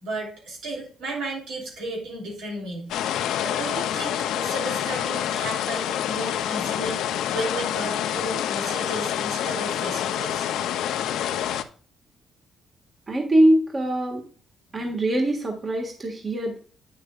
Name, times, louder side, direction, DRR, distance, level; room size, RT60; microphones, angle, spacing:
voice 1, 0.0-2.9 3.4-7.0 7.3-10.5 11.0-11.6, right 1 dB, 85° right, -1 dB, 3.0 m, -34 dB
sound 1, 2.9-11.6, left 11 dB, 85° left, 0.5 m, -27 dB
voice 2, 13.1-14.2 14.7-16.6, right 1 dB, 35° right, 2 dB, 1.6 m, -22 dB
9.0 x 6.4 x 2.3 m, 0.44 s
cardioid pair, 90°, 0 cm